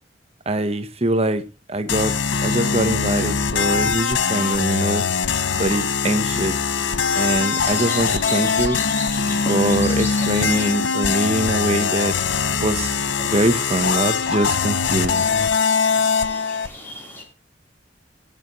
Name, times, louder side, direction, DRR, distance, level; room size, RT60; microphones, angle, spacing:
voice 1, 0.5-1.4 1.7-2.1 2.4-5.0 5.6-6.6 7.1-8.8 9.5-12.2 12.6-15.3, right 2 dB, 35° right, 1.1 m, -23 dB
sound 1, 1.9-16.7, left 5 dB, 85° left, 0.8 m, -22 dB
sound 2, 6.7-17.2, left 1 dB, 10° left, 4.0 m, -37 dB
20.5 x 7.1 x 3.2 m
head